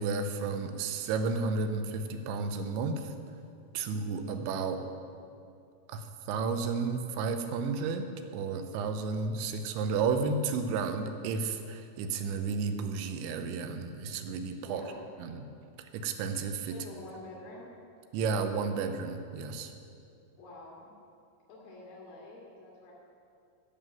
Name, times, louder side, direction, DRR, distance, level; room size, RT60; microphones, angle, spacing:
voice 1, 0.0-3.1 3.7-4.8 5.9-14.8 15.2-15.4 15.9-16.8 18.1-19.7, right 4 dB, 80° right, 7 dB, 3.1 m, -32 dB
voice 2, 14.6-15.0 16.7-17.7 20.4-20.9 21.5-22.9, left 2 dB, 55° left, -6 dB, 3.2 m, -47 dB
12.5 x 7.3 x 8.9 m, 2.5 s
omnidirectional pair, 5.3 m